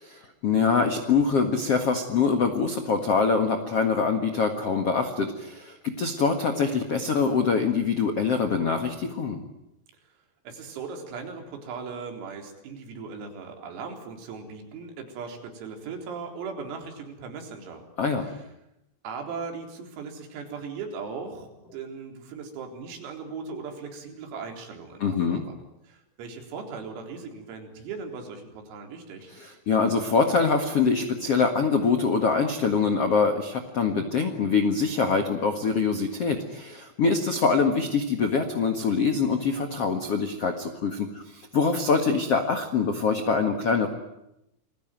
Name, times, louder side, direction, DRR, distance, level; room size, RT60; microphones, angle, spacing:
voice 1, 0.1-9.4 18.0-18.3 25.0-25.4 29.3-43.9, left 5 dB, 70° left, 6 dB, 1.4 m, -24 dB
voice 2, 10.4-17.8 18.2-18.3 19.0-25.6 25.8-29.3, right 5 dB, 90° right, 3 dB, 6.6 m, -38 dB
29.0 x 21.5 x 9.3 m, 0.85 s
omnidirectional pair, 5.9 m